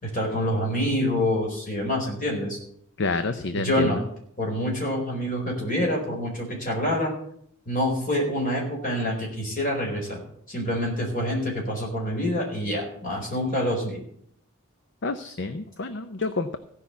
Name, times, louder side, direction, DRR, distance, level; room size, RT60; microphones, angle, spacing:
voice 1, 0.0-2.6 3.5-4.0 4.4-7.1 7.7-10.2 10.5-14.0, left 1 dB, 40° left, -1 dB, 4.6 m, -26 dB
voice 2, 3.0-3.9 15.0-16.6, left 3 dB, 55° left, 9 dB, 0.7 m, -28 dB
15.5 x 5.7 x 8.3 m, 0.68 s
head